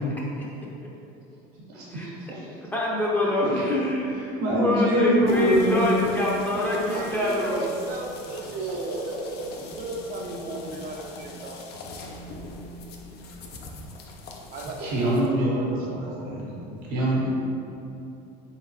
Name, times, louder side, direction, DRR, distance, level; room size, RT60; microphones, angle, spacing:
voice 1, 1.7-2.0 2.3-2.4 3.4-3.6 4.4-5.8 14.8-17.3, right 1 dB, 85° right, -6 dB, 1.4 m, -24 dB
voice 2, 2.7-4.2 4.5-7.7, left 1 dB, 10° left, -5 dB, 0.7 m, -25 dB
sound 1, 5.3-15.3, left 2 dB, 50° left, 0.5 m, -43 dB
voice 3, 6.8-12.1 14.5-16.4, right 2 dB, 45° right, 0 dB, 0.6 m, -35 dB
3.9 x 3.8 x 3.0 m, 2.8 s
supercardioid pair, 115°, 21 cm